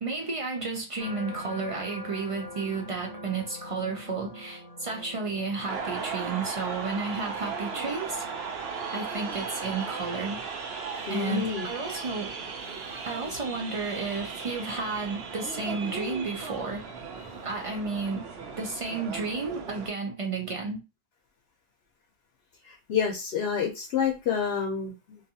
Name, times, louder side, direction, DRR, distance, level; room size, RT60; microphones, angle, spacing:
voice 1, 0.0-8.2 8.9-10.4 11.1-12.3 13.0-16.8 17.4-18.2 18.6-20.8, right 4 dB, 55° right, 0.4 m, -32 dB
sound 1, 1.0-16.2 16.7-17.1, left 1 dB, 50° left, 0.6 m, -47 dB
sound 2, 5.7-19.9, right 5 dB, 75° right, 0.9 m, -36 dB
voice 2, 11.0-11.7 12.7-13.1 17.3-17.5 22.6-25.2, left 7 dB, 80° left, 0.9 m, -29 dB
2.5 x 2.3 x 2.6 m
omnidirectional pair, 1.0 m